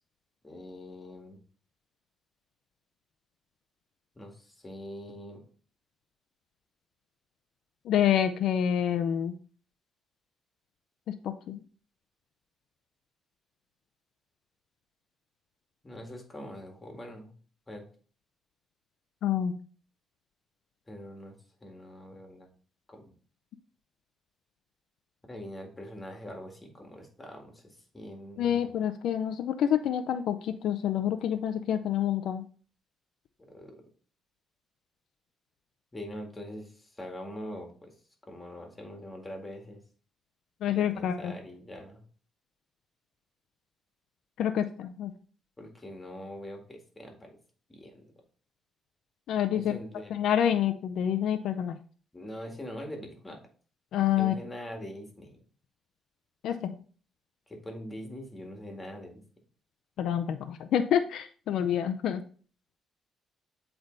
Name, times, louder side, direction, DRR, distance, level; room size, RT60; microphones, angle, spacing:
voice 1, 0.4-1.4 4.2-5.4 15.8-17.3 17.7-17.8 20.9-21.4 21.6-22.5 22.9-23.1 25.3-28.8 33.5-33.7 35.9-37.9 38.3-39.8 40.7-42.0 45.6-47.4 47.7-48.1 49.5-50.2 52.1-53.4 54.2-55.4 57.5-59.2, equal, 20° left, 2 dB, 1.9 m, -43 dB
voice 2, 7.9-9.3 11.1-11.6 19.2-19.5 28.4-32.4 40.6-41.3 44.4-45.1 49.3-49.7 50.1-51.8 53.9-54.3 56.4-56.7 60.0-62.2, left 9 dB, 80° left, 9 dB, 0.5 m, -27 dB
8.0 x 3.4 x 3.9 m, 0.42 s
cardioid pair, 90°, 0 cm